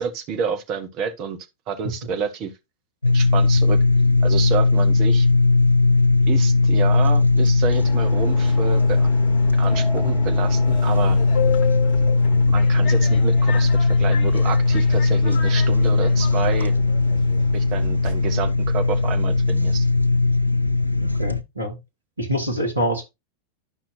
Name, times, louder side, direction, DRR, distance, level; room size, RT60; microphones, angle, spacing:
voice 1, 0.0-1.4 1.7-2.5 3.1-3.8 4.2-5.3 6.3-9.1 9.6-11.2 12.5-16.8 17.5-19.9, right 6 dB, 40° right, 1.3 m, -29 dB
sound 1, 3.0-21.4, left 3 dB, 85° left, 0.5 m, -18 dB
Subway metro underground, 7.7-18.5, left 7 dB, 45° left, 1.1 m, -33 dB
voice 2, 21.0-21.8 22.2-23.0, equal, 85° right, 2.1 m, -25 dB
10.0 x 5.9 x 2.6 m
figure-of-eight pair, 90°, 0 cm